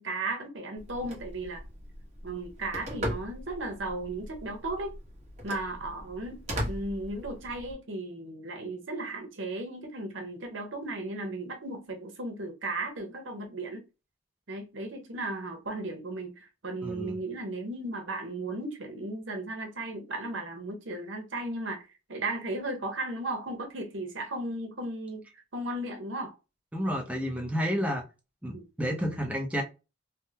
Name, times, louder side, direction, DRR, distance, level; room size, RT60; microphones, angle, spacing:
voice 1, 0.0-1.6 2.2-4.9 5.4-13.8 14.5-26.3 28.5-28.6, right 2 dB, 70° right, 0.9 m, -35 dB
Telephone, 0.8-7.7, equal, 35° right, 1.2 m, -39 dB
voice 2, 16.8-17.2 26.7-28.0 28.4-29.6, equal, 5° right, 0.6 m, -30 dB
3.5 x 2.1 x 2.8 m
head